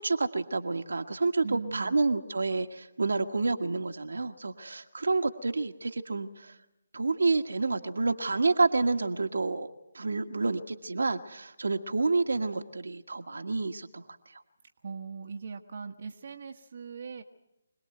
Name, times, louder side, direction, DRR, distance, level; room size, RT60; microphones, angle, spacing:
voice 1, 0.0-6.5 6.9-14.0, right 3 dB, 70° right, 5 dB, 1.6 m, -29 dB
voice 2, 1.4-2.0 14.8-17.2, right 5 dB, 50° right, 3 dB, 1.4 m, -40 dB
26.0 x 19.5 x 7.9 m, 0.91 s
figure-of-eight pair, 150°, 0 cm